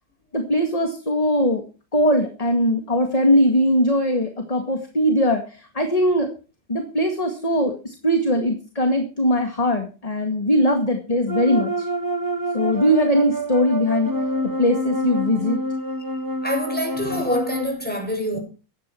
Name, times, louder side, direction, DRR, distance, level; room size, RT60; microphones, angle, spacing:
voice 1, 0.3-1.6 1.9-6.3 6.7-11.9 12.5-14.1 14.6-15.6, equal, 20° left, 2.0 m, -20 dB
sound 1, 11.3-17.7, right 1 dB, 15° right, 0.7 m, -27 dB
voice 2, 16.4-18.4, equal, 5° left, 6.9 m, -26 dB
16.5 x 11.5 x 4.5 m
omnidirectional pair, 2.0 m